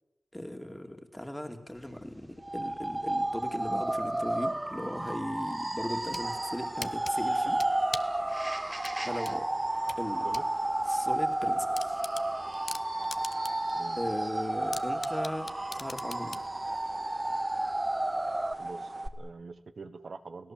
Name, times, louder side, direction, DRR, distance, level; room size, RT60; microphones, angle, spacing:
voice 1, 0.3-7.6 9.0-9.5 10.0-10.3 10.9-12.0 13.9-15.5 15.7-16.4, left 1 dB, 10° left, 5 dB, 2.4 m, -38 dB
sound 1, 2.4-18.5, right 1 dB, 25° right, 0.8 m, -32 dB
sound 2, 5.8-6.3 6.8-8.2 8.8-10.5 10.9-11.0 11.3-11.4 11.7-13.7 14.1-14.2 14.7-16.5, left 3 dB, 65° left, 0.9 m, -40 dB
sound 3, 5.9-19.1, right 2 dB, 40° right, 1.6 m, -39 dB
voice 2, 18.6-20.5, right 4 dB, 75° right, 11 dB, 1.2 m, -44 dB
29.5 x 17.0 x 7.6 m, 1.0 s
wide cardioid pair, 65°, 0 cm